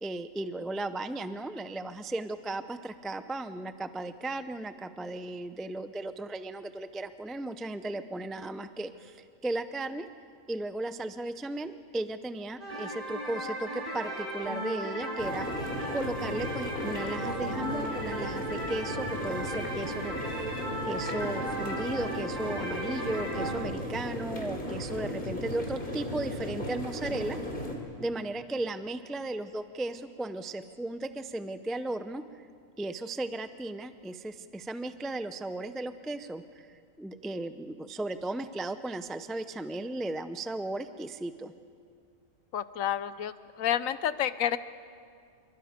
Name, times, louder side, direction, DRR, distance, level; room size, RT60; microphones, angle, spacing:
voice 1, 0.0-10.1 10.5-20.5 20.9-27.4 28.0-32.5 32.8-36.4 36.7-41.5, right 2 dB, ahead, 10 dB, 0.3 m, -36 dB
sound 1, 12.6-23.5, right 1 dB, 35° right, 4.2 m, -36 dB
sound 2, 15.2-27.7, left 1 dB, 40° left, 3.4 m, -36 dB
voice 2, 42.5-44.6, left 10 dB, 80° left, 14 dB, 1.1 m, -30 dB
27.5 x 23.0 x 5.2 m, 2.3 s
omnidirectional pair, 1.4 m